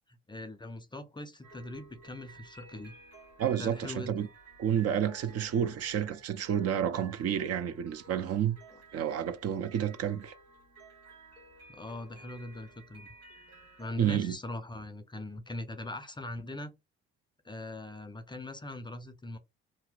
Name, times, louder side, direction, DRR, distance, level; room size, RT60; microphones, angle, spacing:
voice 1, 0.1-2.9 3.6-4.3 8.7-8.8 11.7-13.1 13.8-16.7 17.4-19.4, left 1 dB, 15° left, 0.5 m, -41 dB
sound 1, 1.4-14.4, right 3 dB, 90° right, 1.3 m, -55 dB
voice 2, 3.4-4.3 4.6-8.6 8.9-10.3 14.0-14.4, right 9 dB, 50° right, 0.6 m, -30 dB
2.7 x 2.0 x 3.9 m
hypercardioid pair, 50°, 32 cm